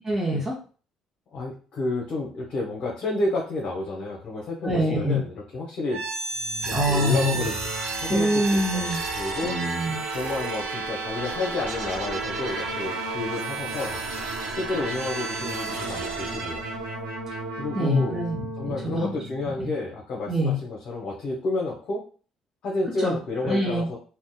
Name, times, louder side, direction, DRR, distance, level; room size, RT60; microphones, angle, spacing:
voice 1, 0.0-0.6 4.6-5.2 6.7-7.5 8.1-9.0 9.4-10.0 17.7-19.1 19.6-19.7 20.3-20.6 23.0-23.2 23.4-23.9, equal, 20° right, -3 dB, 0.7 m, -25 dB
voice 2, 1.3-6.0 6.7-7.5 8.0-9.6 10.1-14.0 14.5-16.6 17.5-18.2 18.6-22.0 22.6-24.0, left 2 dB, 60° left, -3 dB, 0.8 m, -30 dB
sound 1, 5.9-19.8, right 3 dB, 85° right, 0.6 m, -32 dB
2.6 x 2.1 x 2.2 m, 0.38 s
hypercardioid pair, 60°, 2 cm